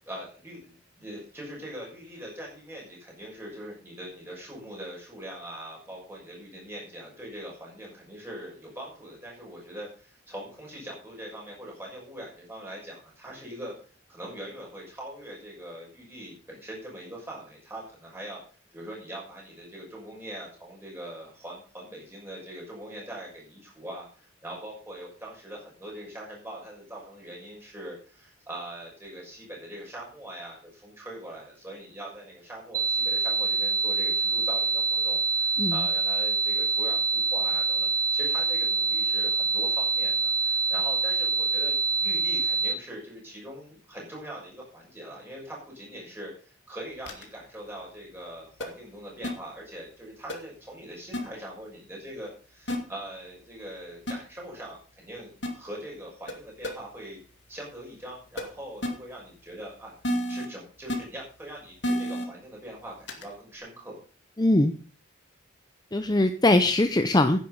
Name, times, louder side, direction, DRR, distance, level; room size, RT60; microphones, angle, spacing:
voice 1, 0.0-13.7 14.1-18.4 18.7-57.2 57.5-59.9 60.3-64.0, right 1 dB, 10° right, -3 dB, 6.3 m, -42 dB
sound 1, 32.7-42.7, right 4 dB, 40° right, 1.5 m, -25 dB
sound 2, 47.1-47.2 48.6-48.7 49.2-49.3 50.3-50.4 51.1-51.2 52.7-52.8 54.1-54.2 55.4-55.5 56.3-56.4 56.6-56.7 58.4-58.5 58.8-58.9 60.0-60.5 60.9-61.0 61.8-62.2 63.1-63.2, equal, 55° left, 2.4 m, -28 dB
voice 2, 64.4-64.7 65.9-67.4, left 1 dB, 20° left, 9 dB, 0.6 m, -21 dB
10.5 x 10.0 x 5.5 m, 0.40 s
head